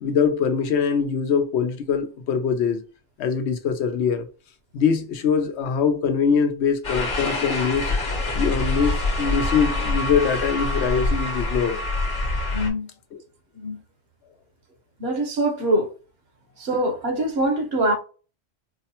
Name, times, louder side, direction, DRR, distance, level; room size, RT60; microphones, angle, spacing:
voice 1, 0.0-2.8 3.2-4.3 4.7-7.9 8.3-11.8, left 6 dB, 85° left, 0.9 m, -23 dB
sound 1, 6.8-12.7, left 2 dB, 50° left, 1.1 m, -25 dB
voice 2, 12.5-12.9 13.5-13.8 15.0-15.9 16.6-17.9, right 1 dB, 65° right, 1.1 m, -23 dB
4.5 x 2.1 x 2.8 m
omnidirectional pair, 1.1 m